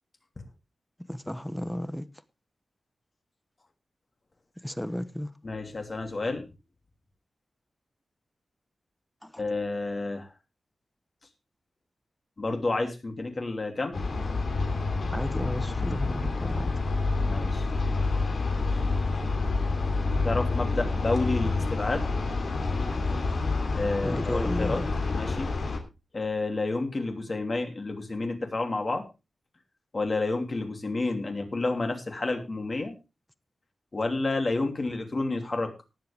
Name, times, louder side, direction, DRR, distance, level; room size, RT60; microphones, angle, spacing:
voice 1, 1.1-2.1 4.6-5.3 9.2-9.4 15.1-16.7 24.0-24.9, equal, 5° left, 1.0 m, -33 dB
voice 2, 5.4-6.5 9.4-10.3 12.4-14.0 17.2-17.7 20.2-22.1 23.7-24.8 25.1-25.5 26.1-29.1 29.9-32.9 33.9-35.7, left 2 dB, 40° left, 2.9 m, -30 dB
sound 1, 13.9-25.8, left 3 dB, 70° left, 3.0 m, -28 dB
19.0 x 7.7 x 3.5 m
wide cardioid pair, 90°, 0 cm